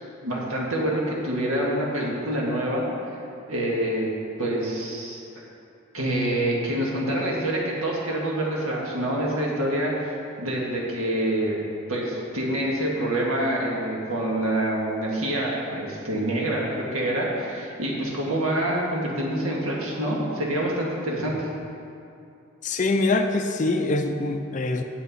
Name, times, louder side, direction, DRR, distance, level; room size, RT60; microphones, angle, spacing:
voice 1, 0.2-3.2 3.5-4.1 4.4-5.2 5.9-11.6 11.9-21.5, right 1 dB, 85° right, -3 dB, 1.8 m, -26 dB
voice 2, 22.6-24.8, left 2 dB, 35° left, 6 dB, 0.4 m, -24 dB
8.4 x 8.2 x 4.2 m, 2.6 s
head